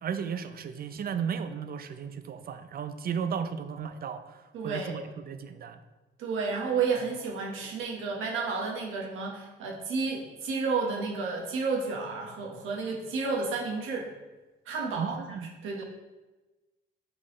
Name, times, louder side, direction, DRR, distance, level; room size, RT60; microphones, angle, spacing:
voice 1, 0.0-5.8 15.0-15.5, right 7 dB, 50° right, 9 dB, 0.6 m, -35 dB
voice 2, 4.5-4.9 6.2-14.1 14.7-15.8, right 4 dB, 85° right, 0 dB, 1.3 m, -31 dB
7.6 x 3.9 x 3.1 m, 1.2 s
cardioid pair, 90°, 20 cm